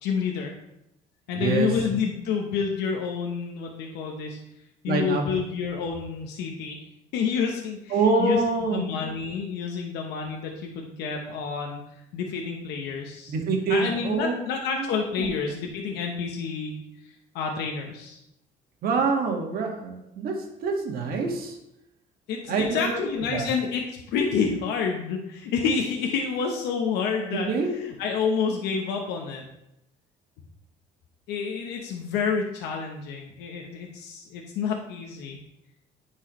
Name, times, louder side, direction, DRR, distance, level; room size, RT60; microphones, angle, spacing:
voice 1, 0.0-0.5 1.3-4.4 4.8-6.8 7.1-11.8 12.1-13.3 13.7-18.2 22.3-29.4 31.3-35.4, left 6 dB, 90° left, 1 dB, 0.9 m, -29 dB
voice 2, 1.4-1.7 4.9-5.2 7.9-8.8 13.3-14.3 15.2-15.3 18.8-20.3 20.6-21.5 22.5-23.0 23.3-23.4 27.3-27.7, right 4 dB, 65° right, 1 dB, 1.6 m, -25 dB
9.9 x 4.7 x 3.1 m, 0.83 s
cardioid pair, 110°, 17 cm